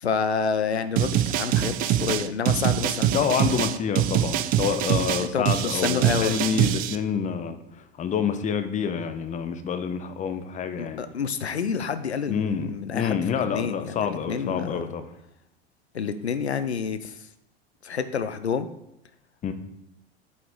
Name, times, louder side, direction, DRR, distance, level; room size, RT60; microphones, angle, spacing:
voice 1, 0.0-3.2 5.2-6.4 10.8-14.8 15.9-17.1 17.8-18.7, left 6 dB, 85° left, 11 dB, 0.5 m, -28 dB
sound 1, 1.0-7.0, right 11 dB, 30° right, 0.4 m, -24 dB
voice 2, 3.1-11.0 12.3-15.0 19.4-19.5, left 7 dB, 25° left, 10 dB, 0.7 m, -27 dB
8.0 x 4.7 x 3.7 m, 0.81 s
figure-of-eight pair, 80°, 32 cm